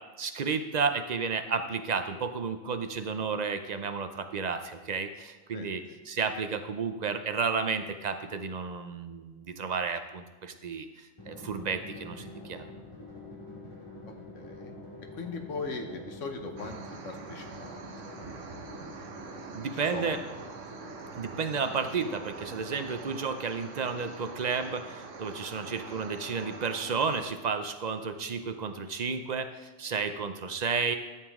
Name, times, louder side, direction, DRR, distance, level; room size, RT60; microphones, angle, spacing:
voice 1, 0.2-12.7 19.5-20.2 21.1-31.0, right 5 dB, 45° right, 8 dB, 0.6 m, -32 dB
Drum, 11.2-23.5, left 2 dB, 25° left, 2.2 m, -47 dB
voice 2, 14.3-14.7 15.2-16.8 17.0-18.9 19.9-20.2 30.5-30.6, left 4 dB, 80° left, 4 dB, 1.4 m, -39 dB
sound 1, 16.6-27.3, right 4 dB, 80° right, 1.3 m, -44 dB
12.0 x 7.2 x 3.6 m, 1.3 s
omnidirectional pair, 1.3 m